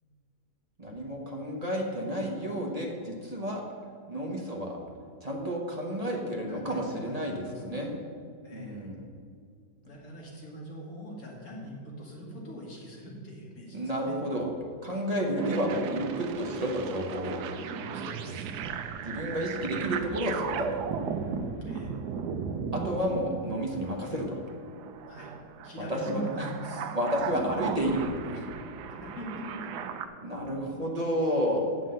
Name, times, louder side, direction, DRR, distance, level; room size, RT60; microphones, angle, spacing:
voice 1, 0.8-3.6 4.1-4.8 5.2-7.9 8.5-9.0 13.7-14.5 14.8-17.4 19.0-20.8 22.7-24.4 25.8-26.5 26.8-28.0 28.3-28.5 30.2-31.7, equal, 25° right, 0 dB, 1.0 m, -31 dB
voice 2, 6.5-7.9 8.4-8.9 9.8-13.8 14.1-14.2 17.9-18.5 21.6-21.9 25.1-25.3 25.6-26.9 29.0-29.6, equal, 55° left, -3 dB, 2.5 m, -42 dB
sound 1, 15.4-30.1, right 6 dB, 75° right, 1.2 m, -36 dB
7.6 x 6.2 x 7.7 m, 2.1 s
omnidirectional pair, 1.8 m